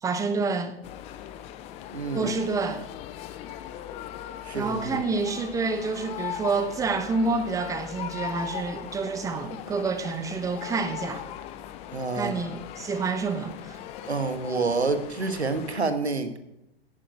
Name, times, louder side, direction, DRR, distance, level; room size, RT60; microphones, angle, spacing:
voice 1, 0.0-0.7 2.1-2.9 4.5-11.2 12.1-13.8, right 4 dB, 10° right, 0.9 m, -28 dB
sound 1, 0.8-15.8, left 11 dB, 20° left, 0.5 m, -39 dB
voice 2, 1.9-2.3 4.4-5.0 11.9-12.3 14.0-16.4, right 3 dB, 85° right, 1.4 m, -28 dB
10.5 x 10.0 x 4.7 m
figure-of-eight pair, 115°, 32 cm